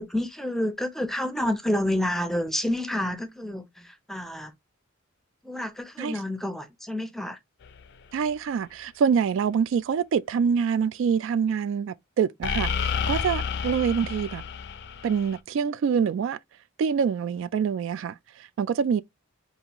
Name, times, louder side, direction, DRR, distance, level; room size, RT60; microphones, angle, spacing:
voice 1, 0.0-4.5 5.4-7.4, left 1 dB, ahead, 0.6 m, -29 dB
sound 1, 7.6-7.8 12.4-15.4, left 6 dB, 55° left, 0.5 m, -30 dB
voice 2, 8.1-14.4 15.0-16.4 16.8-19.0, right 6 dB, 65° right, 0.3 m, -25 dB
5.4 x 2.4 x 2.9 m
head